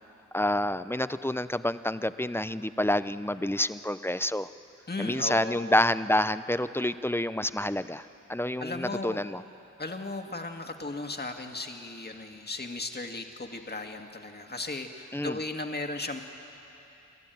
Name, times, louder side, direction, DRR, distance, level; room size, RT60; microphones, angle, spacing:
voice 1, 0.3-4.5 5.0-9.4 15.1-15.4, left 1 dB, 5° left, 14 dB, 0.6 m, -28 dB
voice 2, 4.9-5.8 8.6-9.2 9.8-16.2, left 2 dB, 30° left, 4 dB, 1.9 m, -36 dB
29.0 x 12.0 x 9.3 m, 3.0 s
cardioid pair, 45°, 31 cm